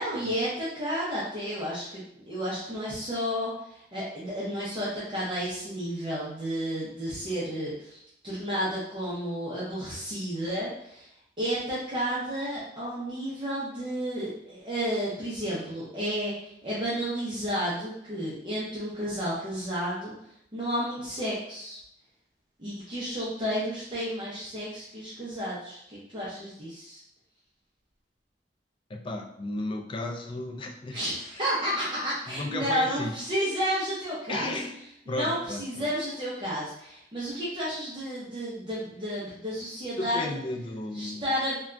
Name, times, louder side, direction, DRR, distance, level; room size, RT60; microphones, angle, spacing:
voice 1, 0.0-11.1 11.4-20.1 20.5-21.8 22.6-27.0 30.9-34.5 35.1-40.2 40.9-41.5, equal, 25° right, -8 dB, 0.6 m, -32 dB
voice 2, 28.9-31.0 32.3-33.1 34.3-34.8 35.1-35.9 40.0-41.3, left 2 dB, 30° left, 3 dB, 0.3 m, -34 dB
3.3 x 2.2 x 2.4 m, 0.74 s
head